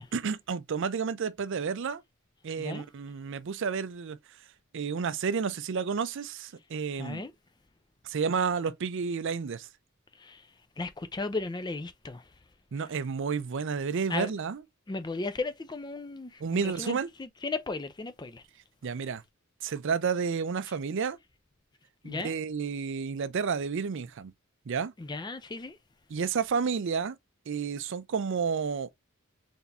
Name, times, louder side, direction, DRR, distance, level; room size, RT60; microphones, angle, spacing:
voice 1, 0.0-2.0 2.4-4.2 4.7-7.2 8.0-9.7 12.7-14.6 16.4-17.1 18.8-19.2 19.6-21.2 22.0-24.3 24.7-24.9 26.1-27.2 27.5-28.9, right 6 dB, 60° right, 0.4 m, -31 dB
voice 2, 7.0-7.3 10.2-10.5 10.8-12.3 14.1-14.3 14.9-18.4 22.0-22.3 25.0-25.8, left 3 dB, 20° left, 0.4 m, -35 dB
4.1 x 3.4 x 2.6 m
head